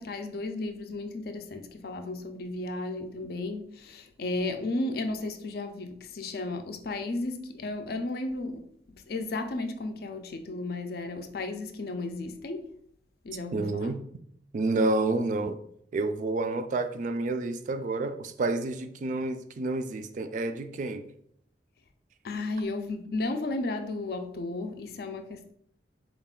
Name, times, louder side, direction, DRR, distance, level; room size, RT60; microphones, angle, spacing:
voice 1, 0.0-12.7 13.2-14.0 22.2-25.5, left 2 dB, 60° left, 0.5 m, -34 dB
voice 2, 13.5-14.0 14.5-15.6 15.9-21.0, right 2 dB, 45° right, 0.3 m, -29 dB
4.2 x 2.4 x 3.6 m
head